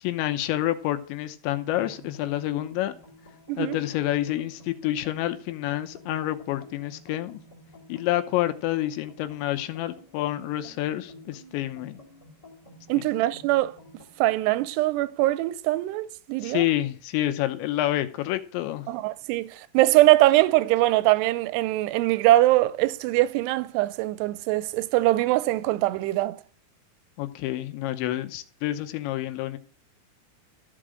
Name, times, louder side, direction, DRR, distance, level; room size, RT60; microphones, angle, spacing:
voice 1, 0.0-2.9 3.6-7.4 7.9-12.0 13.0-13.1 16.4-18.9 27.2-29.6, left 14 dB, 80° left, 3.1 m, -28 dB
sound 1, 1.6-14.3, left 1 dB, 15° left, 1.1 m, -51 dB
voice 2, 12.9-13.8 14.2-16.7 18.9-19.5 19.7-26.4, right 17 dB, 80° right, 2.6 m, -22 dB
14.0 x 5.0 x 7.7 m
omnidirectional pair, 5.2 m